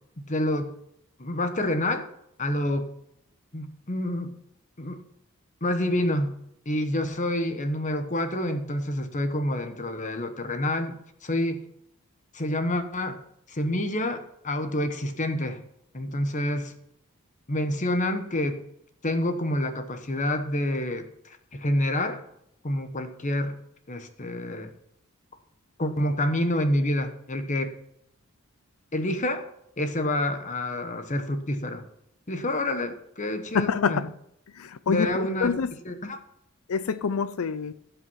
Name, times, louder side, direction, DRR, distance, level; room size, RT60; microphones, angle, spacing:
voice 1, 0.3-0.7 1.2-2.1 2.4-2.9 3.5-4.3 4.8-5.0 5.6-6.4 6.6-11.7 12.3-13.2 13.5-15.6 15.9-16.7 17.5-18.6 19.0-22.2 22.6-23.5 23.9-24.7 25.8-27.7 28.9-29.5 29.8-31.8 32.3-34.0 34.9-35.5 35.9-36.2, left 1 dB, 35° left, 1.1 m, -28 dB
voice 2, 33.5-34.1 34.5-35.7 36.7-37.7, left 6 dB, 70° left, 0.5 m, -26 dB
16.0 x 5.7 x 5.7 m
head